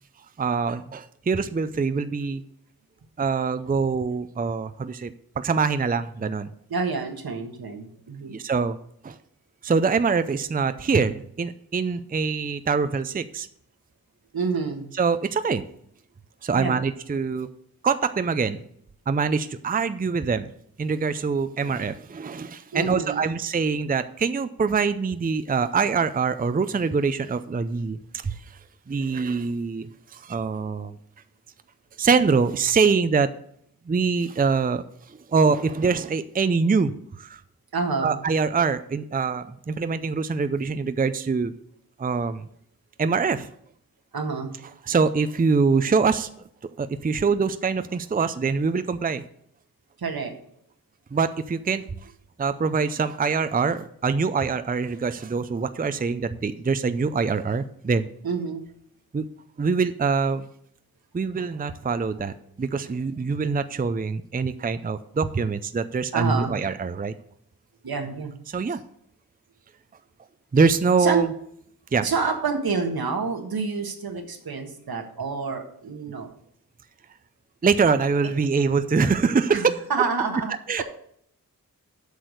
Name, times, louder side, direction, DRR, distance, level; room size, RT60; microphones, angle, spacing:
voice 1, 0.4-2.4 3.2-6.5 8.3-8.8 9.0-9.2 9.6-13.5 15.0-15.6 16.4-17.5 17.8-18.6 19.1-20.5 20.8-28.6 28.9-31.0 32.0-33.3 33.9-34.8 35.1-36.9 37.2-37.4 38.0-41.5 42.0-42.5 43.0-43.5 44.8-46.3 46.8-49.2 51.1-51.8 52.4-58.1 59.1-59.2 59.6-60.5 61.1-67.1 68.5-68.8 70.5-71.3 71.9-72.1 77.6-79.7 80.7-80.8, right 5 dB, 25° right, 11 dB, 0.5 m, -24 dB
voice 2, 6.7-8.3 14.3-14.9 16.5-16.8 22.7-23.3 37.7-38.2 44.1-44.6 50.0-50.3 58.2-58.6 66.1-66.6 67.8-68.3 71.0-71.2 72.0-76.3 79.5-80.5 80.8-80.9, right 4 dB, 80° right, 4 dB, 1.6 m, -28 dB
8.1 x 6.1 x 6.4 m, 0.68 s
wide cardioid pair, 75°, 36 cm